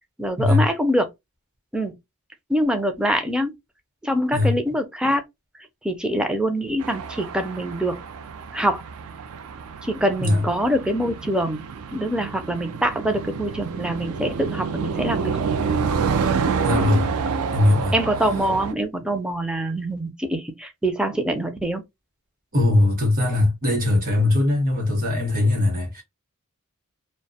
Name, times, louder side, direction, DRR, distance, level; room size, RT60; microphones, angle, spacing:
voice 1, 0.2-1.1 1.7-1.9 2.5-3.5 4.0-5.2 5.8-8.0 8.5-8.8 9.8-15.4 16.6-16.9 17.9-21.8, equal, 5° right, 0.4 m, -24 dB
sound 1, 6.8-18.7, right 5 dB, 70° right, 0.4 m, -28 dB
voice 2, 16.6-17.1 17.5-17.9 22.5-26.0, left 2 dB, 40° right, 1.0 m, -20 dB
2.2 x 2.1 x 2.7 m
head